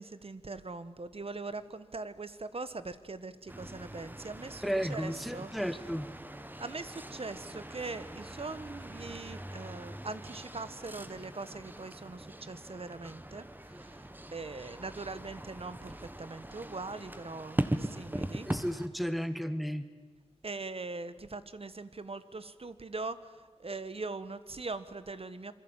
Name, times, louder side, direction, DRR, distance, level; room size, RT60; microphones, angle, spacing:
voice 1, 0.0-4.6 4.9-5.5 6.6-14.0 14.3-18.5 20.4-25.5, right 3 dB, 60° right, 13 dB, 1.4 m, -41 dB
sound 1, 3.5-18.9, right 1 dB, 15° right, 1.6 m, -41 dB
voice 2, 4.6-6.1 18.5-19.9, equal, ahead, 12 dB, 1.7 m, -33 dB
27.5 x 22.5 x 9.0 m, 1.4 s
wide cardioid pair, 70°, 11 cm